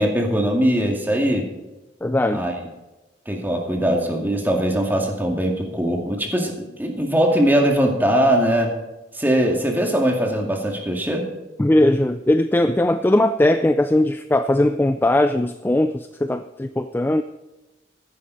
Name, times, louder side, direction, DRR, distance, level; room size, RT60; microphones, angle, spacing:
voice 1, 0.0-1.5 2.3-2.5 3.3-8.7 9.1-11.3, equal, 10° right, 1 dB, 2.1 m, -21 dB
voice 2, 2.0-2.4 11.6-17.2, left 1 dB, 10° left, 10 dB, 0.3 m, -19 dB
14.0 x 11.0 x 4.0 m, 1.1 s
head